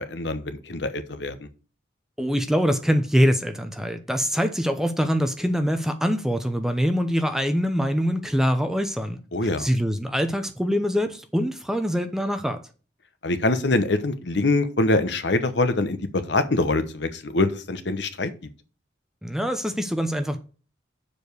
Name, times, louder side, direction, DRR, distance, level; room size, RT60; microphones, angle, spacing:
voice 1, 0.0-1.5 9.3-9.7 13.2-18.3, left 2 dB, 65° left, 1.0 m, -24 dB
voice 2, 2.2-12.6 19.2-20.4, equal, 5° right, 0.7 m, -24 dB
7.0 x 5.1 x 6.3 m
head